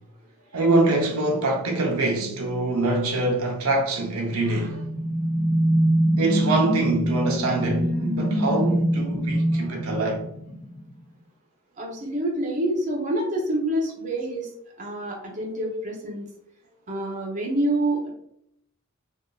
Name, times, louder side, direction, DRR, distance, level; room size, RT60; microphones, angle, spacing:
voice 1, 0.5-4.8 6.2-10.2, right 2 dB, 85° right, 0.7 m, -24 dB
sound 1, 4.3-10.8, equal, 5° left, 0.4 m, -24 dB
voice 2, 11.8-14.5 14.8-16.3 16.9-18.1, right 1 dB, 35° right, 0.7 m, -27 dB
3.6 x 2.5 x 2.3 m
head